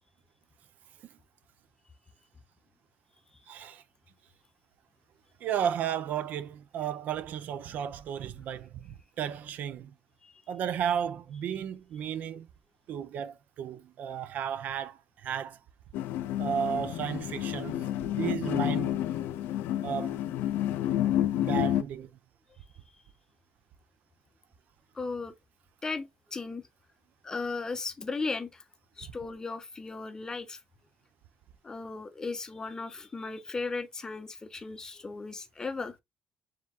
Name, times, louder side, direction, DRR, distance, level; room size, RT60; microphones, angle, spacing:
voice 1, 3.5-3.8 5.4-9.9 10.5-12.5 12.9-15.6 16.4-17.8 18.2-19.0 19.8-20.2 21.3-22.1, right 8 dB, 55° right, 0.4 m, -33 dB
sound 1, 15.9-21.8, left 12 dB, 90° left, 0.4 m, -30 dB
voice 2, 24.9-25.3 25.8-26.6 27.2-28.6 29.0-30.6 31.6-36.0, left 3 dB, 20° left, 0.6 m, -36 dB
4.5 x 3.6 x 2.3 m
cardioid pair, 160°, 3 cm